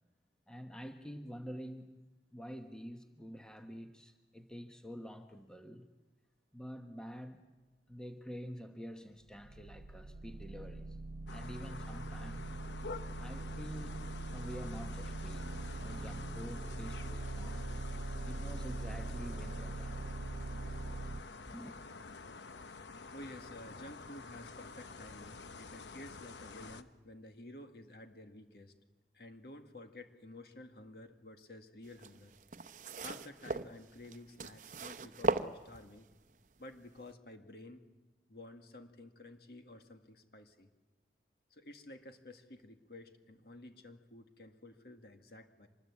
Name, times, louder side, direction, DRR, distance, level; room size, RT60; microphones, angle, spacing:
voice 1, 0.5-1.9 2.3-5.9 6.5-7.4 7.9-11.0 11.3-12.5 13.2-14.0 14.3-17.7 18.3-20.0 21.5-21.8, equal, 5° left, 1.1 m, -47 dB
sound 1, 9.3-21.2, right 2 dB, 85° right, 0.7 m, -42 dB
sound 2, 11.3-26.8, left 4 dB, 85° left, 0.9 m, -49 dB
voice 2, 23.1-28.7 29.1-32.3 33.0-36.1 36.6-37.9 38.3-40.7 41.5-45.7, left 1 dB, 60° left, 1.9 m, -52 dB
sound 3, 31.9-36.1 36.9-37.0, right 3 dB, 45° right, 0.8 m, -37 dB
25.0 x 20.5 x 8.4 m
head